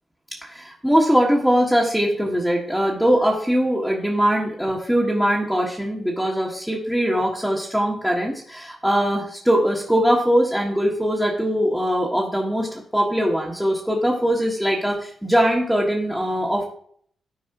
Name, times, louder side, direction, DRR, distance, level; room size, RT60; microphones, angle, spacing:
voice 1, 0.3-16.6, equal, 5° right, -3 dB, 1.6 m, -21 dB
12.0 x 4.6 x 3.0 m, 0.62 s
supercardioid pair, 55°, 0 cm